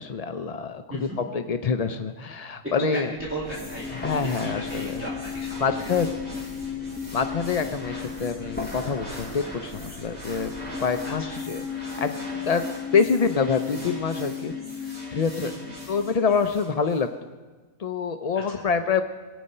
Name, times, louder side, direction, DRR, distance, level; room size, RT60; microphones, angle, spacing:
voice 1, 0.0-1.1 1.3-3.1 3.9-4.9 5.6-6.1 7.1-10.5 10.8-12.2 12.4-12.6 12.9-14.5 15.1-15.5 15.9-17.1 17.8-19.0, left 5 dB, 65° left, 8 dB, 0.3 m, -26 dB
voice 2, 2.6-6.0 11.0-11.4 15.4-15.6 18.4-18.7, right 1 dB, 10° right, -6 dB, 2.5 m, -36 dB
sound 1, 3.2-16.5, left 6 dB, 10° left, 1.0 m, -35 dB
sound 2, 3.4-17.0, right 1 dB, 30° right, 3.0 m, -43 dB
22.5 x 8.8 x 5.5 m, 1.4 s
omnidirectional pair, 1.4 m